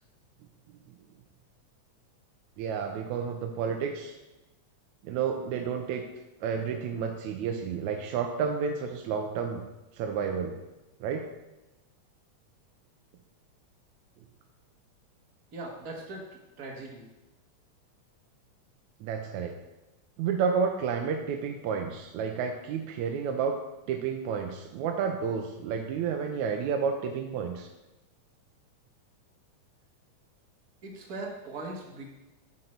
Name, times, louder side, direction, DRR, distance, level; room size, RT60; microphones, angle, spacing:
voice 1, 2.6-4.2 5.0-6.0 6.4-9.6 9.9-10.6 11.0-11.3 19.0-19.6 20.2-23.6 23.9-27.7, right 6 dB, 85° right, 3 dB, 2.0 m, -30 dB
voice 2, 15.5-16.3 16.6-17.0 30.8-32.0, right 2 dB, 45° right, 0 dB, 1.3 m, -39 dB
8.0 x 6.5 x 4.4 m, 1.0 s
omnidirectional pair, 3.4 m